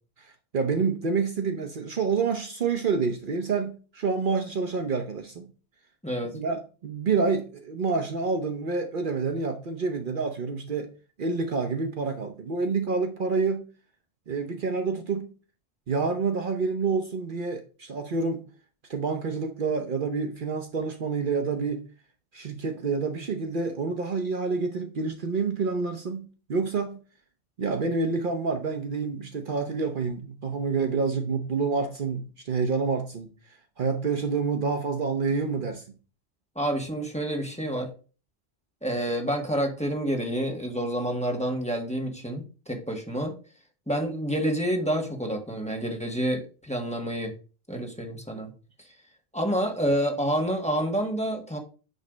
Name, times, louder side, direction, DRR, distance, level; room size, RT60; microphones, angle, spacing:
voice 1, 0.2-5.5 6.3-10.9 11.2-13.7 14.3-15.3 15.9-18.4 18.9-21.9 22.3-27.0 27.6-33.3 33.8-35.8 48.3-48.4, right 4 dB, 55° right, 0.9 m, -28 dB
voice 2, 36.5-37.9 38.8-43.3 43.9-47.3 47.7-48.5 49.3-51.6, equal, 5° left, 1.5 m, -28 dB
9.1 x 3.2 x 5.0 m
omnidirectional pair, 1.0 m